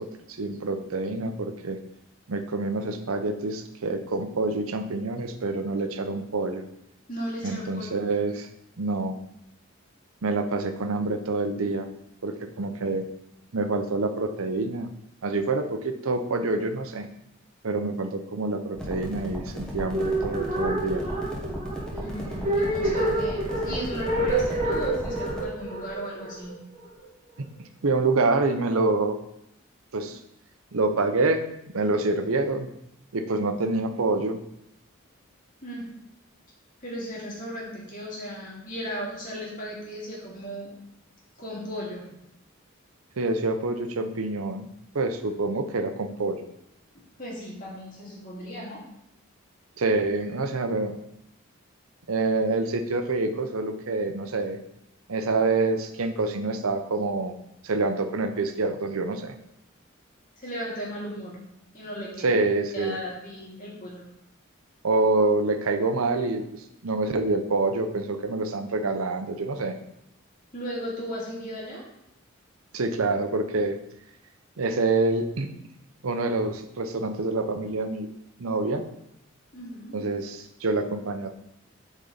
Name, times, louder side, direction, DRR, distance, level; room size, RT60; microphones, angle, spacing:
voice 1, 0.0-1.8 2.3-6.6 7.4-8.5 8.8-9.2 10.2-11.9 12.2-13.1 13.5-14.9 15.2-17.1 17.6-21.0 27.8-29.2 29.9-30.2 30.7-31.4 31.7-32.7 33.1-34.4 43.2-44.6 44.9-46.4 49.8-51.0 52.1-54.6 55.1-57.4 57.6-59.4 62.2-63.0 64.8-69.8 72.7-73.8 74.6-75.5 76.0-78.1 78.4-78.8 79.9-81.3, right 3 dB, 85° right, 8 dB, 0.7 m, -26 dB
voice 2, 7.1-7.8 21.9-26.5 35.6-35.9 36.8-40.7 41.4-42.1 47.2-48.8 60.4-61.4 61.7-62.4 62.7-64.0 70.5-71.8 79.5-80.0, equal, 40° left, -5 dB, 2.2 m, -36 dB
sound 1, 18.7-25.4, equal, 5° left, 1.1 m, -35 dB
sound 2, 19.8-27.0, right 1 dB, 30° right, 1.7 m, -28 dB
8.3 x 4.2 x 4.0 m, 0.79 s
head